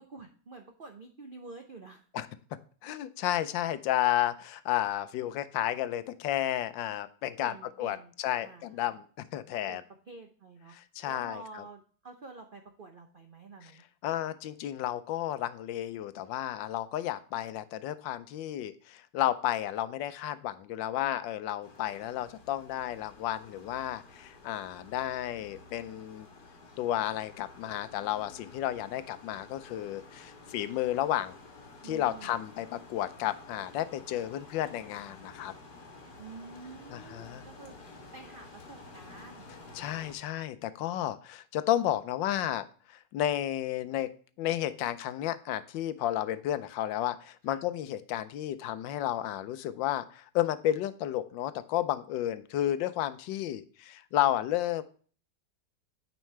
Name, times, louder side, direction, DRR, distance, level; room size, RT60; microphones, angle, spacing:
voice 1, 0.0-2.0 7.4-8.1 8.4-9.0 9.7-10.7 11.0-13.8 31.8-32.3 36.2-37.7 38.1-39.5 47.5-47.6, right 3 dB, 70° right, 4 dB, 0.5 m, -48 dB
voice 2, 2.8-9.0 9.3-9.8 10.7-11.6 14.0-26.3 26.8-31.4 31.8-35.5 36.9-37.4 39.7-44.1 44.4-54.8, left 12 dB, 90° left, 13 dB, 1.3 m, -32 dB
sound 1, 21.6-40.1, left 3 dB, 60° left, 2.0 m, -51 dB
9.1 x 5.4 x 3.2 m, 0.42 s
omnidirectional pair, 2.0 m